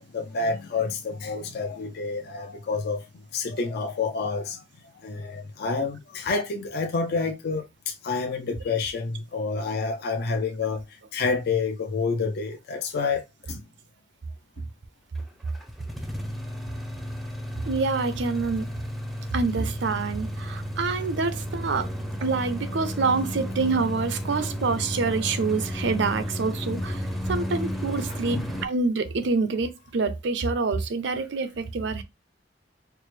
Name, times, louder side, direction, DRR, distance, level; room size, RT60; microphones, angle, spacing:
voice 1, 0.0-3.0 3.3-4.6 5.0-7.6 8.0-10.8 11.1-13.2 13.5-13.6 26.7-26.8 28.3-28.5, left 4 dB, 55° left, 0.5 m, -28 dB
sound 1, 15.2-28.7, equal, ahead, 0.5 m, -33 dB
voice 2, 17.7-18.7 19.3-21.9 22.2-27.0 27.3-32.0, right 4 dB, 70° right, 0.5 m, -26 dB
4.6 x 2.0 x 3.2 m
head